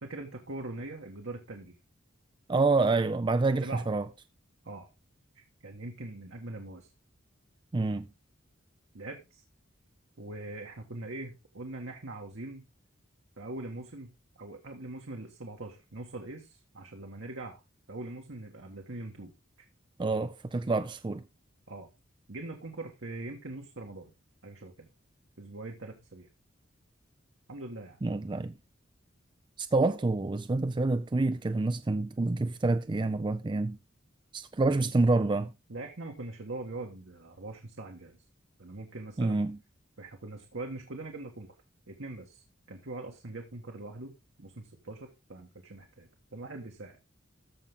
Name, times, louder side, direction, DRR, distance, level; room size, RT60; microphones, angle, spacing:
voice 1, 0.0-1.8 3.5-3.9 4.6-4.9 5.3-6.9 8.9-9.4 10.2-12.7 13.4-17.6 17.9-19.3 21.7-21.9 22.3-24.1 24.4-24.9 25.4-26.3 27.5-28.0 34.8-34.9 35.7-38.2 38.6-39.4 40.0-41.5 41.9-42.4 42.7-47.0, right 2 dB, 70° right, 1.5 m, -42 dB
voice 2, 2.5-4.1 7.7-8.1 20.0-21.2 28.0-28.5 29.6-33.8 34.3-35.5 39.2-39.6, right 3 dB, 25° right, 0.4 m, -27 dB
14.0 x 5.7 x 3.6 m
head